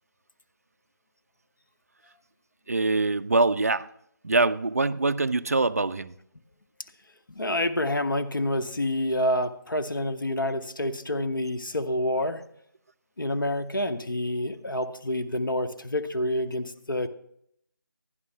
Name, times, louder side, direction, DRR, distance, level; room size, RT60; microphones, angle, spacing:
voice 1, 2.7-3.9 4.2-6.1, right 3 dB, 45° right, 0.3 m, -24 dB
voice 2, 7.3-12.4 13.2-17.1, left 1 dB, 70° left, 0.8 m, -28 dB
11.0 x 10.5 x 3.4 m
figure-of-eight pair, 160°, 11 cm